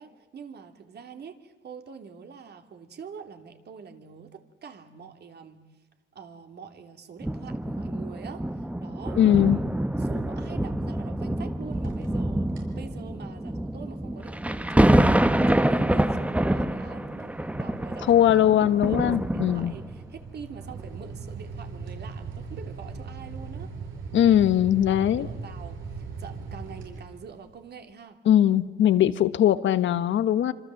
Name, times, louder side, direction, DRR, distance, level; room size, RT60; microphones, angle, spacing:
voice 1, 0.0-5.6 6.1-9.6 10.0-18.3 18.8-23.7 24.3-24.4 24.7-28.2, right 6 dB, 55° right, 6 dB, 3.1 m, -45 dB
sound 1, 7.2-20.0 20.7-20.8, right 1 dB, 5° right, 1.1 m, -26 dB
voice 2, 9.2-9.6 18.1-19.7 24.1-25.3 28.3-30.5, left 11 dB, 70° left, 13 dB, 1.2 m, -20 dB
sound 2, 11.7-12.2 12.5-12.8 13.3-27.6, right 4 dB, 80° right, 6.4 m, -41 dB
26.5 x 26.0 x 7.8 m, 1.1 s
cardioid pair, 90°, 20 cm